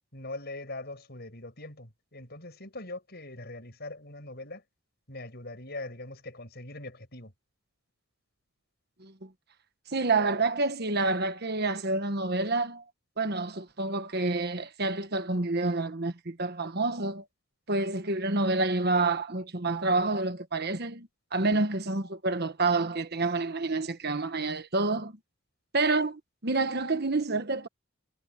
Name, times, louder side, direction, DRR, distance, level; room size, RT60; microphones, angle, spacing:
voice 1, 0.1-4.6 5.1-7.3, left 2 dB, 50° left, 8.0 m, -42 dB
voice 2, 9.9-12.8 13.2-17.2 17.7-25.1 25.7-27.7, right 3 dB, 50° right, 1.3 m, -28 dB
head